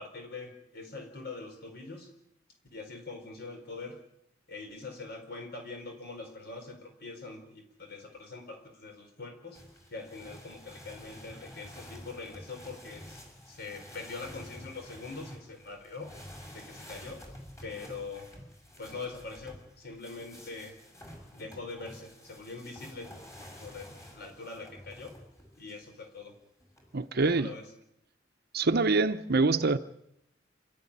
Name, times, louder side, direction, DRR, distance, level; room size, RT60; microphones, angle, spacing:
voice 1, 0.0-2.1 2.7-4.0 4.5-9.6 9.9-16.1 16.5-17.2 17.6-18.3 18.8-20.8 21.3-23.2 23.6-25.1 25.6-26.3 27.2-27.7, left 3 dB, 55° left, 4.5 m, -43 dB
sound 1, 9.5-25.9 26.6-27.3, equal, 15° left, 6.5 m, -50 dB
voice 2, 26.9-27.5 28.5-29.8, right 3 dB, 55° right, 0.8 m, -25 dB
27.5 x 13.5 x 10.0 m
head